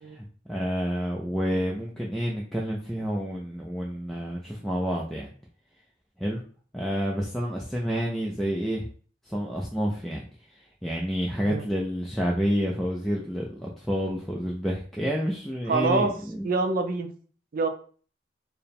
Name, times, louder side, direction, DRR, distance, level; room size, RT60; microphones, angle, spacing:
voice 1, 0.1-5.3 6.2-6.4 6.7-8.9 9.2-10.2 10.8-16.5, equal, ahead, -3 dB, 0.4 m, -29 dB
voice 2, 15.7-16.1 16.4-17.1 17.5-17.7, right 3 dB, 50° right, 7 dB, 0.5 m, -25 dB
4.5 x 2.2 x 3.4 m, 0.43 s
head